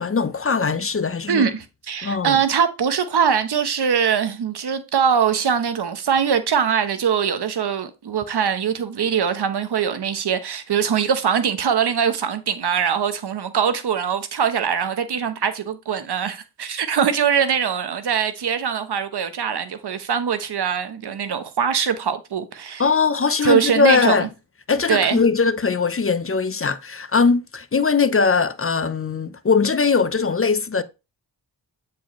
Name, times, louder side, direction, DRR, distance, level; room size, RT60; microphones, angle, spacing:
voice 1, 0.0-1.5 2.0-2.4 22.8-24.3 24.7-30.8, left 5 dB, 30° left, 0.7 m, -20 dB
voice 2, 1.3-22.8 23.4-24.3 24.9-25.2, right 7 dB, 70° right, 1.0 m, -22 dB
8.3 x 4.7 x 3.1 m
cardioid pair, 50°, 41 cm